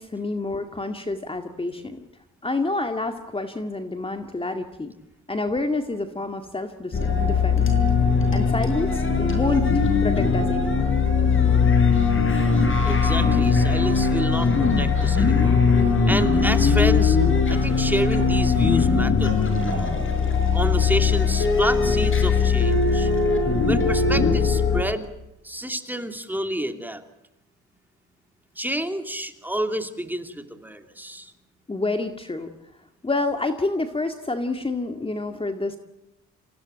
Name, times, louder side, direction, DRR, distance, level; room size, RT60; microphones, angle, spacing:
voice 1, 0.0-2.0 2.4-4.9 5.3-7.7 8.3-11.0 31.7-32.5 33.0-35.8, left 2 dB, 20° left, 6 dB, 2.0 m, -28 dB
sound 1, 6.9-24.8, left 5 dB, 40° left, 6.3 m, -20 dB
voice 2, 12.8-15.6 16.0-17.2 17.5-20.0 20.5-23.1 23.6-25.1 25.4-27.0 28.6-31.3, right 1 dB, 5° right, 7 dB, 2.8 m, -29 dB
28.0 x 16.5 x 9.0 m, 0.94 s
cardioid pair, 90°, 30 cm